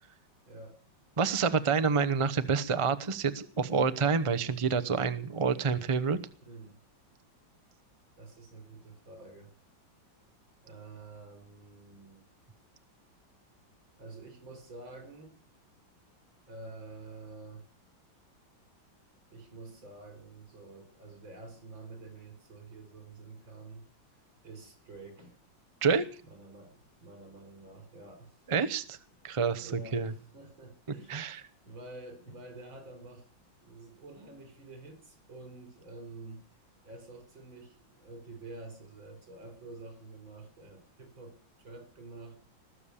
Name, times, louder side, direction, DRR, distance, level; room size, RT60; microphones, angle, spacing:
voice 1, 0.5-0.8 6.4-6.8 8.2-9.5 10.6-12.2 14.0-15.4 16.5-17.6 19.3-23.9 24.4-25.4 26.2-28.4 29.6-33.3 33.6-36.5 36.8-42.4, right 3 dB, 80° right, 7 dB, 5.4 m, -48 dB
voice 2, 1.2-6.2 25.8-26.0 28.5-29.0 29.2-30.1 31.1-31.4, right 5 dB, 30° right, 11 dB, 0.5 m, -28 dB
20.0 x 7.3 x 8.5 m, 0.43 s
omnidirectional pair, 2.1 m